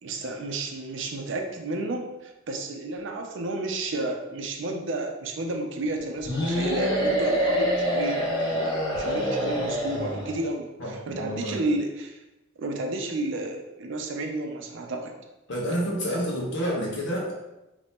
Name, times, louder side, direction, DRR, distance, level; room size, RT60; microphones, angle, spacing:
voice 1, 0.0-12.2 12.6-15.1, right 2 dB, 65° right, 3 dB, 0.5 m, -31 dB
sound 1, 6.3-10.4, equal, 20° left, 0.9 m, -26 dB
voice 2, 10.8-11.6 15.5-17.3, equal, 60° left, -3 dB, 0.9 m, -29 dB
2.8 x 2.7 x 3.5 m, 0.97 s
head